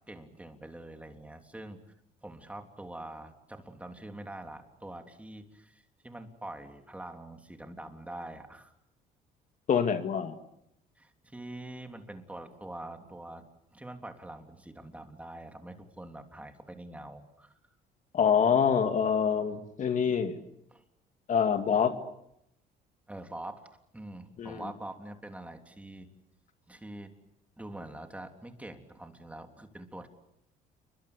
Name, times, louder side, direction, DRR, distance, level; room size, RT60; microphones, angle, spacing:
voice 1, 0.1-1.8 2.2-8.7 11.0-17.5 20.7-20.8 23.1-23.7 23.9-26.1 26.7-27.1 27.6-30.1, right 1 dB, 10° right, 5 dB, 3.3 m, -44 dB
voice 2, 9.7-10.4 18.1-20.4 21.3-22.0 24.4-24.7, left 7 dB, 50° left, 7 dB, 2.4 m, -26 dB
29.5 x 23.0 x 8.1 m, 0.78 s
cardioid pair, 110°, 17 cm